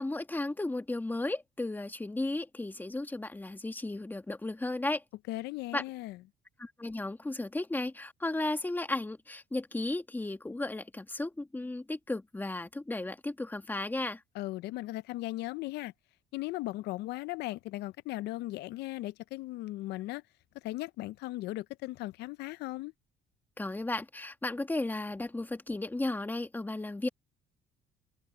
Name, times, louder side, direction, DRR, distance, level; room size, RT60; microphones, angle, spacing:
voice 1, 0.0-5.0 5.7-5.8 6.6-14.2 23.6-27.1, left 2 dB, 10° left, 1.9 m, -34 dB
voice 2, 5.3-6.2 14.3-15.9 16.3-20.2 20.6-22.9, left 17 dB, 80° left, 0.5 m, -37 dB
cardioid pair, 110°, 17 cm